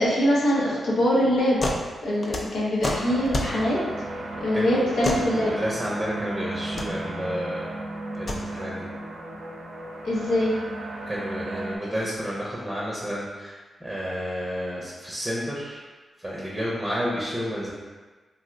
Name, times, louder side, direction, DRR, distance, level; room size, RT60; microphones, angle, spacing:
voice 1, 0.0-1.6 2.0-3.8 4.4-5.5 10.0-10.6, equal, 80° left, -6 dB, 0.7 m, -23 dB
sound 1, 1.6-1.8 2.1-3.6 5.0-5.3 6.5-6.9 8.1-8.4, left 1 dB, 50° left, 0.4 m, -28 dB
sound 2, 2.9-11.8, right 1 dB, 80° right, 0.4 m, -35 dB
voice 2, 4.5-7.7 8.1-8.9 11.1-15.8 16.2-17.7, equal, 20° right, -5 dB, 0.6 m, -31 dB
2.6 x 2.1 x 3.6 m, 1.3 s
supercardioid pair, 45°, 0 cm